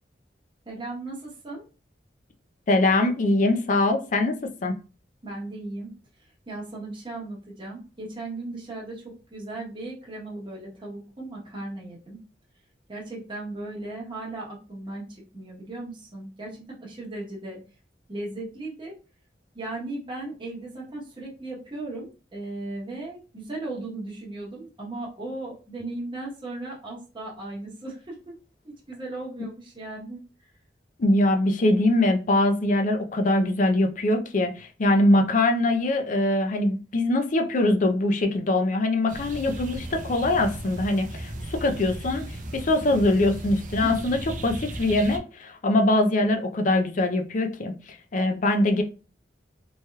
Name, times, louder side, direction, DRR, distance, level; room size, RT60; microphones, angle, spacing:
voice 1, 0.7-1.6 5.2-5.9 6.2-12.2 12.9-17.6 18.1-19.0 19.5-28.4 28.9-30.5 43.8-43.9, right 2 dB, 30° right, 1.0 m, -37 dB
voice 2, 2.7-4.7 31.0-42.2 42.5-48.8, left 1 dB, 45° left, 0.5 m, -23 dB
sound 1, 39.1-45.2, right 1 dB, 50° right, 0.5 m, -36 dB
3.2 x 2.8 x 2.2 m
head